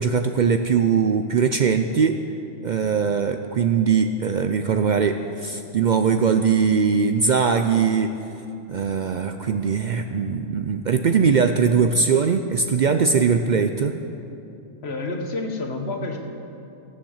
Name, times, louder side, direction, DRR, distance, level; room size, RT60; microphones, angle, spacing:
voice 1, 0.0-2.2 2.6-8.1 8.7-13.9, right 6 dB, 55° right, 7 dB, 0.5 m, -21 dB
voice 2, 14.8-16.2, left 2 dB, 65° left, 3 dB, 1.5 m, -29 dB
15.5 x 7.5 x 7.2 m, 2.7 s
omnidirectional pair, 1.1 m